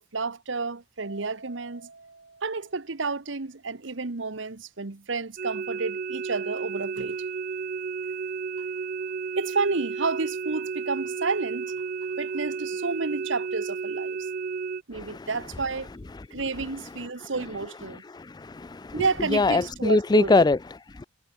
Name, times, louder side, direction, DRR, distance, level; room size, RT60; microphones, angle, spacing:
voice 1, 0.0-1.9 2.4-7.2 9.4-11.7 12.2-14.2 14.9-15.9 16.3-18.0 18.9-20.4, right 4 dB, 80° right, 1.2 m, -30 dB
Mallet percussion, 1.0-3.4, right 3 dB, 65° right, 4.2 m, -49 dB
sound 1, 5.4-14.8, right 5 dB, 50° right, 0.4 m, -32 dB
voice 2, 14.9-15.3 16.1-16.7 16.9-17.3 17.9-21.1, left 3 dB, 20° left, 0.4 m, -25 dB
head